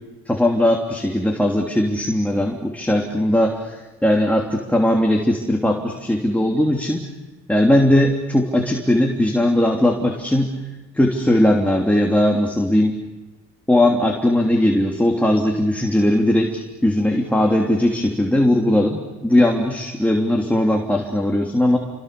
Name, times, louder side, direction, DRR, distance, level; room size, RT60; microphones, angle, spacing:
voice 1, 0.3-7.1 7.5-10.5 10.9-12.9 13.7-21.8, left 1 dB, 5° left, 0 dB, 3.1 m, -19 dB
29.0 x 24.5 x 6.9 m, 1.1 s
cardioid pair, 90°, 30 cm